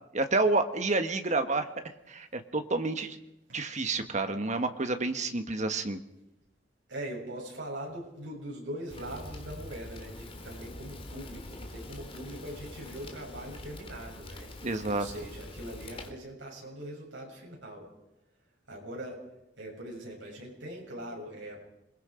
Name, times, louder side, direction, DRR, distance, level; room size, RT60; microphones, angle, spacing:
voice 1, 0.1-1.7 2.1-3.2 3.5-6.0 14.6-15.1, right 3 dB, 40° right, 8 dB, 1.5 m, -29 dB
voice 2, 6.9-14.5 14.9-17.9 18.7-19.2 19.6-21.6, right 1 dB, 80° right, -1 dB, 7.6 m, -41 dB
Fire, 8.9-16.1, left 1 dB, 30° left, 2.6 m, -44 dB
27.0 x 21.0 x 5.1 m, 0.88 s
head